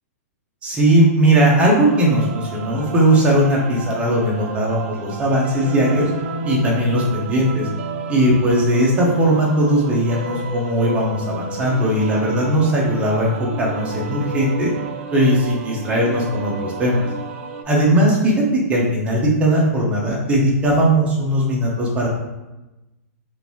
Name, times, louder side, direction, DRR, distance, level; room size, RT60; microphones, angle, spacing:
voice 1, 0.6-6.1 6.4-7.7 8.1-14.7 15.1-17.1 17.7-22.1, right 1 dB, 15° right, -3 dB, 0.8 m, -18 dB
sound 1, 1.6-17.6, right 3 dB, 50° right, 0.4 m, -32 dB
3.7 x 2.5 x 3.0 m, 1.0 s
hypercardioid pair, 145°, 9 cm